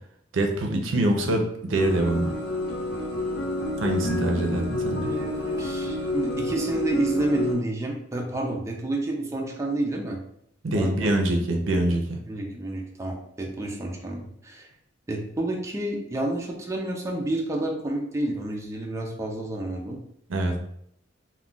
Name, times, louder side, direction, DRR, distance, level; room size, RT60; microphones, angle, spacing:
voice 1, 0.3-2.3 3.8-5.1 10.6-12.3 20.3-20.6, right 1 dB, 80° right, 3 dB, 0.5 m, -24 dB
sound 1, 1.7-7.5, left 1 dB, 55° left, 0.7 m, -29 dB
voice 2, 5.0-10.2 10.7-11.2 12.3-14.7 15.1-20.0, right 1 dB, 15° right, 0 dB, 0.4 m, -29 dB
2.3 x 2.2 x 3.7 m, 0.72 s
head